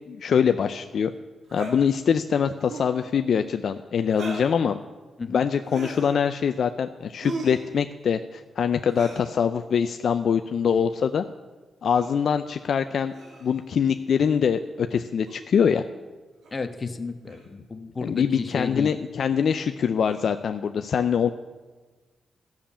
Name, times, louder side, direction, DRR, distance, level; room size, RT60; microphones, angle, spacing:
voice 1, 0.1-1.1 1.5-4.8 5.3-11.2 11.8-13.1 13.4-15.8 18.0-21.3, left 7 dB, 70° left, 8 dB, 0.5 m, -24 dB
sound 1, 1.5-1.8 2.6-2.9 4.1-4.5 5.6-6.1 7.2-7.6 8.9-9.3 10.6-10.8 11.9-12.2 13.1-13.6 15.3-15.4 16.4-16.6 17.3-17.5 18.3-18.5 20.0-20.4, right 3 dB, 75° right, 2.6 m, -37 dB
voice 2, 16.5-18.9, left 4 dB, 35° left, 8 dB, 1.2 m, -32 dB
12.5 x 7.2 x 8.7 m, 1.3 s
cardioid pair, 65°, 0 cm